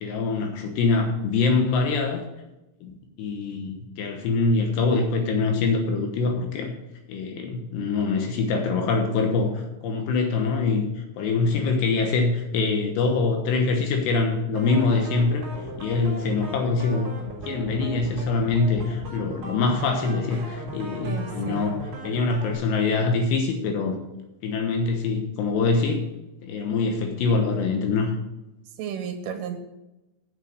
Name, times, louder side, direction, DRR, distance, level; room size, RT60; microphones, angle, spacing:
voice 1, 0.0-2.2 2.8-6.7 7.1-10.9 11.2-15.4 15.8-17.1 17.5-24.0 24.4-26.0 26.4-28.2, left 4 dB, 70° left, 4 dB, 3.0 m, -24 dB
sound 1, 14.5-22.5, right 1 dB, 25° right, 3.3 m, -37 dB
voice 2, 21.0-21.7 28.8-29.6, right 7 dB, 85° right, 5 dB, 3.9 m, -33 dB
9.0 x 7.7 x 6.4 m, 0.99 s
omnidirectional pair, 5.6 m